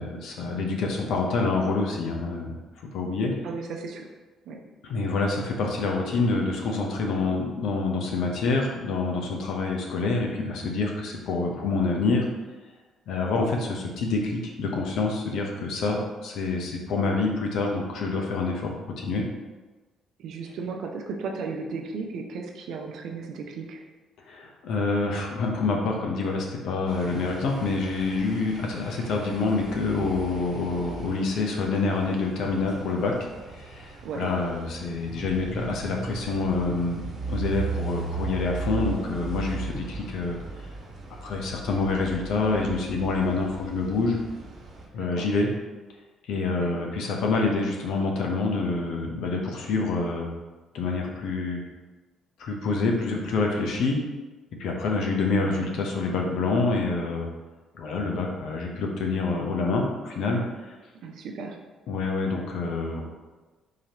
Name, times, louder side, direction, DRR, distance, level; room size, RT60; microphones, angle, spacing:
voice 1, 0.0-2.5 2.9-3.3 4.8-12.3 13.1-19.2 24.3-33.1 33.5-40.4 41.2-44.2 44.9-45.5 46.3-50.3 50.7-51.6 52.4-54.0 54.5-57.3 57.7-60.7 61.9-63.0, left 3 dB, 70° left, 0 dB, 0.8 m, -27 dB
voice 2, 3.4-4.1 4.5-4.6 20.2-23.8 34.0-34.3 45.0-45.3 46.6-46.8 55.4-55.7 61.0-61.6, right 4 dB, 70° right, 2 dB, 0.6 m, -35 dB
sound 1, 26.9-44.9, right 4 dB, 55° right, 1.4 m, -37 dB
4.8 x 3.0 x 2.9 m, 1.2 s
hypercardioid pair, 55°, 0 cm